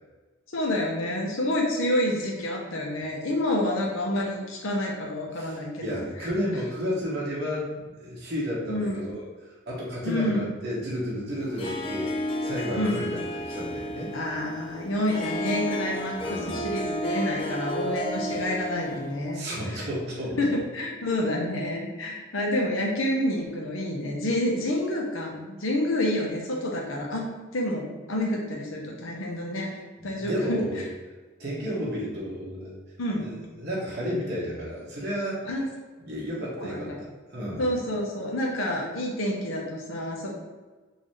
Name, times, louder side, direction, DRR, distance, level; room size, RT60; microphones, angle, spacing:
voice 1, 0.5-6.0 8.7-9.0 10.0-10.4 12.8-13.1 14.1-19.4 20.4-27.3 27.5-29.7 30.0-30.6 33.0-33.2 35.4-35.7 36.6-37.0 37.6-40.4, left 1 dB, 85° left, 0 dB, 0.9 m, -28 dB
voice 2, 5.4-9.2 9.7-14.2 16.2-16.7 19.3-20.6 21.2-21.3 30.0-30.9 31.4-32.8 33.1-35.4 36.0-37.7, equal, 55° right, -6 dB, 1.2 m, -32 dB
Harp, 11.4-19.3, equal, 25° left, 0.3 m, -32 dB
3.9 x 2.7 x 3.2 m, 1.3 s
head